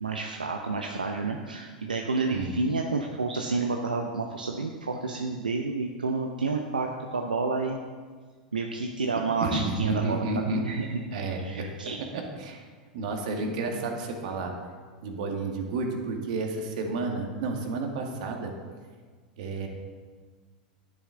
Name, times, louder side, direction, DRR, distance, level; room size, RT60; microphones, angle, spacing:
voice 1, 0.0-7.8 8.5-10.2 10.6-11.0 11.4-12.0, right 3 dB, 90° right, 2 dB, 0.7 m, -30 dB
voice 2, 9.4-10.6 11.1-11.7 12.1-12.6 12.9-14.5 15.0-18.5 19.4-19.7, right 3 dB, 60° right, 3 dB, 1.8 m, -31 dB
11.0 x 9.9 x 3.8 m, 1.5 s
hypercardioid pair, 90°, 4 cm